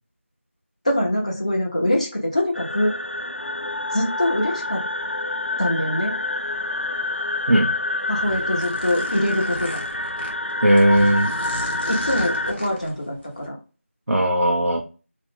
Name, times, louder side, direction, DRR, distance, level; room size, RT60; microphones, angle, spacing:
voice 1, 0.8-2.9 3.9-4.8 5.6-6.2 8.1-9.8 11.9-13.6, left 1 dB, 30° left, -2 dB, 0.8 m, -23 dB
sound 1, 2.5-12.5, left 2 dB, 55° left, 0.3 m, -27 dB
sound 2, 8.0-13.5, equal, 5° right, 0.5 m, -37 dB
voice 2, 10.6-11.3 14.1-14.8, right 1 dB, 80° right, 0 dB, 0.7 m, -17 dB
3.0 x 2.5 x 3.6 m, 0.33 s
figure-of-eight pair, 175°, 7 cm